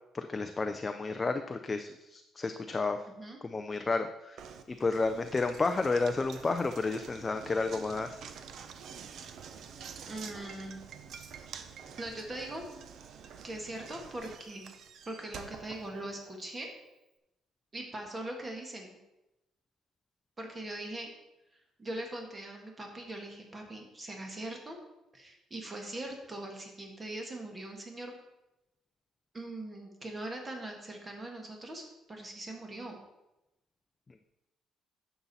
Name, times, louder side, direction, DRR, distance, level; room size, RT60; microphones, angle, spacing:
voice 1, 0.1-3.0 3.4-4.4 4.7-8.2, left 3 dB, 20° left, 7 dB, 0.4 m, -31 dB
voice 2, 3.1-3.4 10.0-10.8 12.0-12.6 13.4-14.7 15.0-16.7 17.7-19.0 20.4-21.1 21.5-24.8 25.1-28.2 29.3-33.0, right 1 dB, 20° right, 2 dB, 1.5 m, -41 dB
Knock, 4.4-16.5, right 7 dB, 50° right, 0.6 m, -48 dB
9.9 x 7.0 x 4.1 m, 0.95 s
cardioid pair, 165°, 0 cm